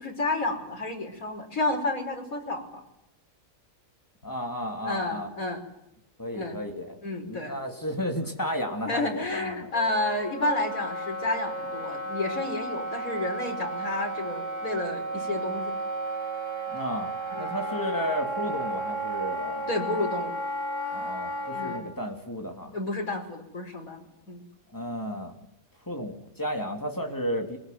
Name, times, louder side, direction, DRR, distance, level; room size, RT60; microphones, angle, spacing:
voice 1, 0.0-2.8 4.9-5.6 6.3-6.6 7.0-7.6 8.9-15.7 17.3-17.5 19.7-20.3 21.5-21.8 22.7-24.4, left 2 dB, 80° left, 3 dB, 5.4 m, -31 dB
voice 2, 4.2-5.3 6.2-9.7 16.7-19.7 20.9-22.7 24.7-25.4 25.9-27.6, equal, 15° left, 3 dB, 3.3 m, -33 dB
Wind instrument woodwind instrument, 9.7-21.8, right 2 dB, 30° left, 3.0 m, -33 dB
22.0 x 21.5 x 9.5 m, 0.87 s
omnidirectional pair, 1.5 m